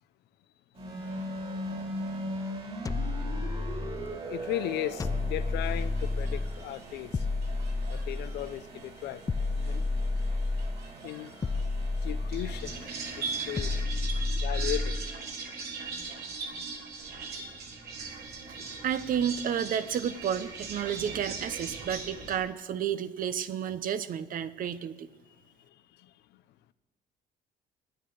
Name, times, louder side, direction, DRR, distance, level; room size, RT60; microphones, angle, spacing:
sound 1, 0.7-13.8, right 1 dB, 35° right, 2.8 m, -41 dB
sound 2, 2.9-4.2 5.0-6.6 7.1-8.6 9.3-10.9 11.4-12.8 13.6-15.2, left 3 dB, 20° left, 0.4 m, -31 dB
voice 1, 4.0-7.3 7.9-9.2 9.5-9.8 11.0-11.3 12.0-12.9 13.2-13.7 14.4-15.0 25.6-26.4, left 13 dB, 80° left, 0.7 m, -37 dB
sound 3, 4.5-22.4, right 4 dB, 70° right, 3.3 m, -41 dB
voice 2, 18.8-25.1, right 8 dB, 55° right, 0.8 m, -31 dB
10.5 x 9.0 x 9.3 m
cardioid pair, 110°, 17 cm